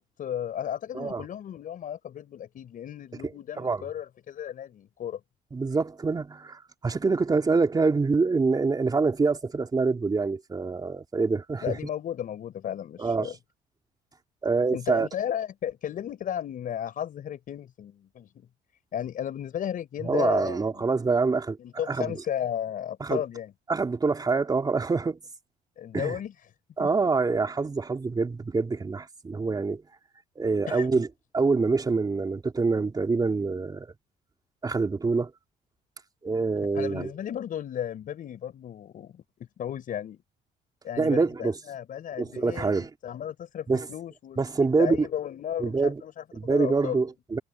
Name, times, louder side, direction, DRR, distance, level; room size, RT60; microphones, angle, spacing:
voice 1, 0.0-5.2 11.6-13.4 14.7-18.5 18.9-20.8 21.6-23.5 25.8-26.3 26.8-26.9 30.7-31.0 36.7-40.2 40.8-42.7 43.0-47.0, left 10 dB, 55° left, 5.4 m, -34 dB
voice 2, 5.5-11.8 13.0-13.3 14.4-15.1 20.0-21.6 21.9-22.2 23.0-23.2 23.7-25.2 25.9-26.2 26.8-29.8 30.4-31.1 31.3-33.9 34.6-35.3 36.2-37.1 41.0-41.6 42.2-42.9 43.7-43.9 44.4-45.1 45.6-46.0 46.3-47.4, right 4 dB, 25° right, 3.2 m, -25 dB
cardioid pair, 110°, 17 cm